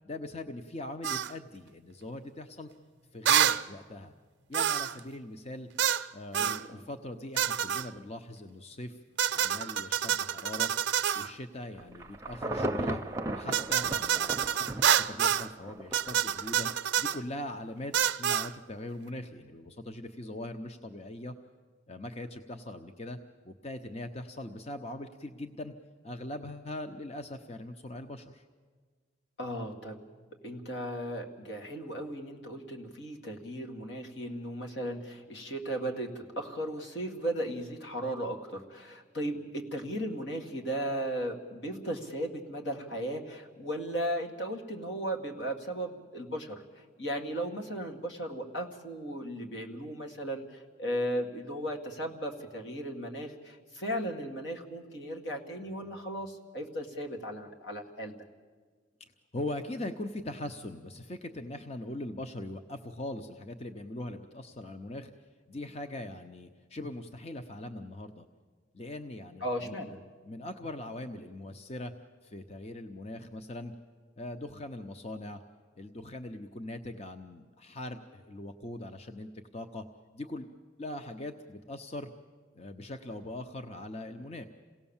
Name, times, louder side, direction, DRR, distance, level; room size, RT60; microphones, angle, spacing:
voice 1, 0.0-2.7 3.1-4.1 4.5-5.7 6.1-9.0 9.3-10.7 11.1-13.0 13.3-16.7 17.0-21.3 21.9-23.2 23.4-25.7 26.0-28.4 59.3-65.1 65.5-68.3 68.7-69.8 70.2-71.9 72.2-73.7 74.2-75.4 75.8-79.8 80.1-80.5 80.8-82.1 82.5-84.5, left 1 dB, 35° left, 7 dB, 0.7 m, -41 dB
sound 1, 1.0-1.3 3.3-3.6 4.5-5.0 5.8-6.1 6.3-6.6 7.4-7.9 9.2-11.3 13.5-15.5 15.9-17.2 17.9-18.5, right 9 dB, 80° right, 0.5 m, -27 dB
voice 2, 6.4-6.8 29.4-30.1 30.4-58.1 69.4-70.0, equal, 80° left, 2 dB, 2.1 m, -36 dB
Insect / Thunder / Rain, 11.8-16.1 16.6-16.7, right 1 dB, 15° right, 0.7 m, -35 dB
27.5 x 17.5 x 7.2 m, 1.5 s
head